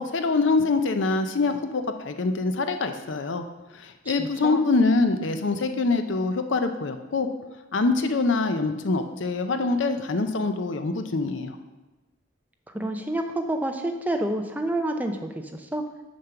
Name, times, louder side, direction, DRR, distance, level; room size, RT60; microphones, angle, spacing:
voice 1, 0.0-3.4 3.7-7.3 7.7-11.6, left 3 dB, 70° left, 8 dB, 0.6 m, -24 dB
voice 2, 4.0-4.6 12.7-15.8, right 1 dB, 10° right, 4 dB, 0.5 m, -29 dB
6.6 x 5.3 x 5.8 m, 1.1 s
head